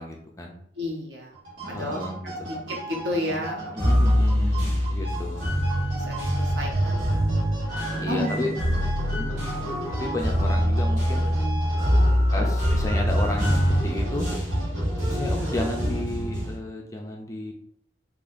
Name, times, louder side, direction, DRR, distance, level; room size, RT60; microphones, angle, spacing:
voice 1, 0.0-0.6 1.7-2.5 3.8-5.5 8.0-8.5 9.3-9.5 10.0-11.3 12.3-14.3 15.0-17.5, left 1 dB, 15° left, 1 dB, 0.4 m, -32 dB
voice 2, 0.7-1.4 1.7-4.5 5.3-7.3 7.9-8.6 9.0-9.7 12.0-12.5 15.1-15.5, left 1 dB, 60° right, 0 dB, 0.8 m, -34 dB
sound 1, 1.3-16.3, right 1 dB, 80° right, 1.5 m, -36 dB
sound 2, 3.8-16.5, equal, 40° right, 1.4 m, -24 dB
4.0 x 2.9 x 2.5 m, 0.65 s
head